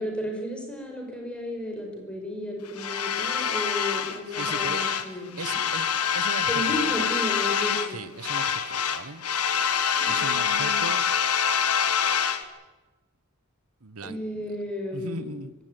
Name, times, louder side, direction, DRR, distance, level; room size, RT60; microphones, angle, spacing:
voice 1, 0.0-5.6 6.5-8.0 9.9-10.8 14.0-15.2, left 1 dB, 5° left, 1 dB, 5.3 m, -33 dB
sound 1, 2.8-5.1 5.4-7.9 8.2-12.4, left 7 dB, 90° left, 1.5 m, -25 dB
voice 2, 4.4-5.0 5.4-7.1 7.9-9.3 10.1-11.1 13.8-14.2 14.9-15.5, right 3 dB, 85° right, 13 dB, 1.2 m, -38 dB
24.5 x 16.0 x 9.4 m, 1.2 s
head